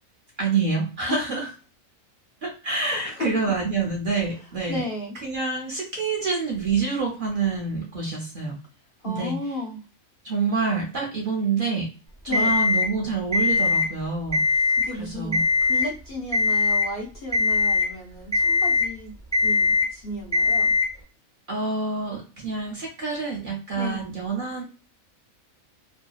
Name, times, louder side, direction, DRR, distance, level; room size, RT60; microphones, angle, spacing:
voice 1, 0.4-1.5 2.4-4.8 5.2-8.5 9.0-9.3 10.2-11.9 12.2-14.4 15.0-15.4 21.5-24.6, right 4 dB, 50° right, -2 dB, 0.6 m, -27 dB
voice 2, 1.1-1.4 2.7-3.4 4.3-5.1 9.0-9.8 12.3-12.5 14.7-19.2 19.4-20.8 23.7-24.0, left 1 dB, 60° left, -2 dB, 0.6 m, -34 dB
Alarm, 12.3-12.9 13.3-13.9 14.3-14.9 15.3-15.9 16.3-16.9 17.3-17.9 18.3-18.9 19.3-19.9 20.3-20.9, left 4 dB, 5° left, 0.4 m, -21 dB
2.7 x 2.2 x 2.3 m, 0.33 s
omnidirectional pair, 1.4 m